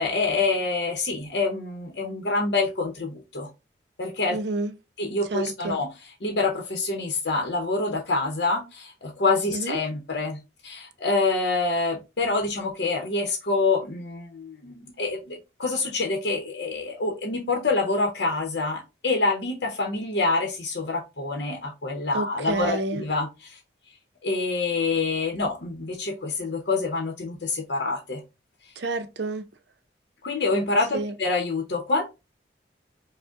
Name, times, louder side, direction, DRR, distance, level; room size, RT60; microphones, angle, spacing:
voice 1, 0.0-3.5 4.0-4.4 5.0-5.9 6.2-23.6 24.2-28.2 30.2-32.1, left 3 dB, 65° left, 0.8 m, -26 dB
voice 2, 4.3-4.7 5.3-5.8 9.5-9.8 22.1-23.0 28.8-29.5 30.9-31.1, right 3 dB, 65° right, 0.6 m, -29 dB
5.0 x 2.1 x 3.6 m
head